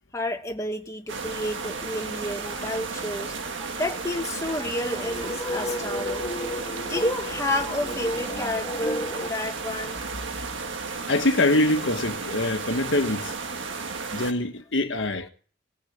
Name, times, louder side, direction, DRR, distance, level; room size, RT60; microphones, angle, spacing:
voice 1, 0.1-6.3 6.7-10.0, left 1 dB, 15° left, 1.3 m, -30 dB
sound 1, 1.1-14.3, right 4 dB, 85° right, 1.6 m, -33 dB
sound 2, 4.5-9.3, left 1 dB, 30° left, 1.8 m, -34 dB
voice 2, 11.1-13.4 14.1-15.3, left 2 dB, 80° left, 1.4 m, -24 dB
19.5 x 6.6 x 8.5 m
head